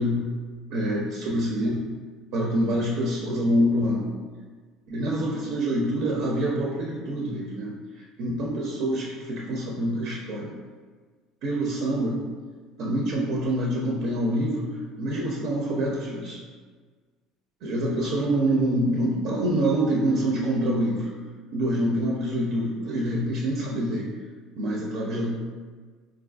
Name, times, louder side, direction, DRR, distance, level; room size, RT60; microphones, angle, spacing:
voice 1, 0.7-1.8 2.3-4.1 4.9-10.5 11.4-12.2 12.8-14.7 15.0-16.4 17.6-21.1 21.5-24.1 24.6-25.3, right 1 dB, 60° right, -2 dB, 0.5 m, -26 dB
4.3 x 2.4 x 2.3 m, 1.5 s
cardioid pair, 150°, 0 cm